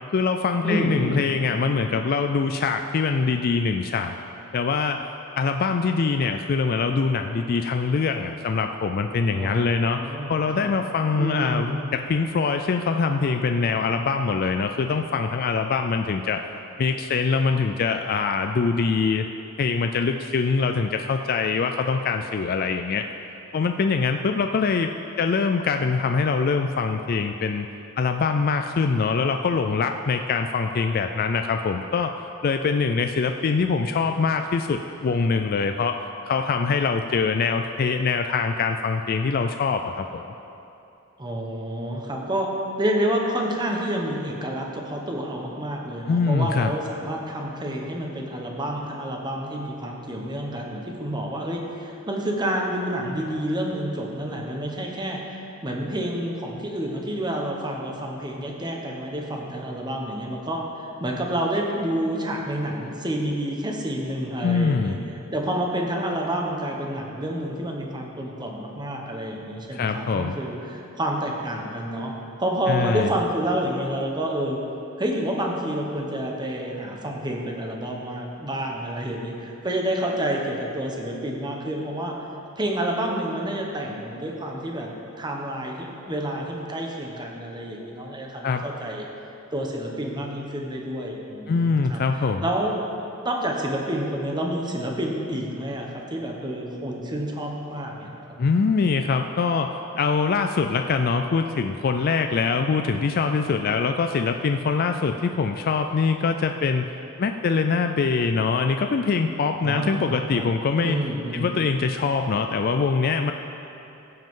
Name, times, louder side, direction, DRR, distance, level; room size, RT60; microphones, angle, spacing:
voice 1, 0.1-4.1 4.5-5.0 5.4-10.0 10.3-16.4 16.8-19.3 19.6-23.0 23.5-24.9 25.2-27.7 28.0-32.1 32.4-36.0 36.3-40.2 46.1-46.7 64.4-65.0 69.7-70.4 72.7-73.1 88.4-88.6 91.5-92.4 98.4-106.9 107.2-111.0 111.3-113.3, left 5 dB, 45° left, 6 dB, 0.4 m, -23 dB
voice 2, 0.6-1.3 9.3-10.7 11.2-12.0 41.2-42.5 42.8-55.4 55.6-65.0 65.3-72.1 72.4-74.6 75.0-82.1 82.6-84.9 85.2-89.1 89.5-92.7 93.2-98.4 109.6-110.5 110.8-111.5, right 1 dB, 20° right, 0 dB, 1.2 m, -29 dB
15.5 x 7.8 x 3.8 m, 2.8 s
head